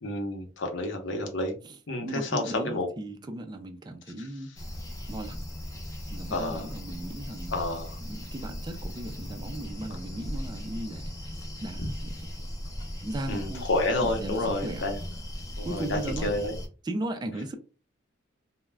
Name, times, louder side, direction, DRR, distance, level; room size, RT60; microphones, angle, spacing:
voice 1, 0.0-1.6 1.9-2.9 4.2-4.3 6.3-6.7 7.5-8.0 11.8-11.9 13.3-15.0 15.6-16.6, left 2 dB, 70° left, 0.7 m, -30 dB
voice 2, 1.6-4.5 5.1-5.5 6.1-7.5 8.0-12.5 13.0-13.7 14.0-14.9 15.6-16.4 16.8-17.6, right 1 dB, 20° right, 0.3 m, -37 dB
sound 1, 4.6-16.7, equal, 20° left, 0.6 m, -38 dB
2.3 x 2.0 x 3.2 m
head